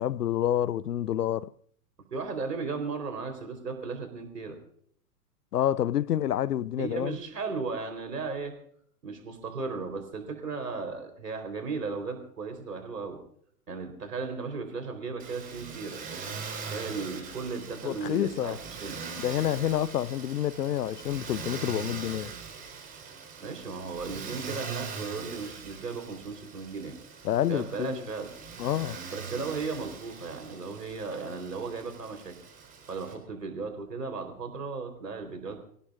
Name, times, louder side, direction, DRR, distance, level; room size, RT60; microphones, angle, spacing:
voice 1, 0.0-1.5 5.5-7.2 17.8-18.6 19.2-22.3 27.2-28.0 28.6-29.0, left 11 dB, 75° left, 0.7 m, -28 dB
voice 2, 2.1-4.6 6.8-8.6 9.0-13.2 13.7-16.0 16.6-19.0 23.4-26.9 27.5-28.3 29.1-32.3 32.9-35.6, right 4 dB, 80° right, 3.9 m, -36 dB
Motor vehicle (road), 15.2-33.1, right 5 dB, 20° right, 3.9 m, -42 dB
27.0 x 17.0 x 2.4 m
figure-of-eight pair, 110°, 47 cm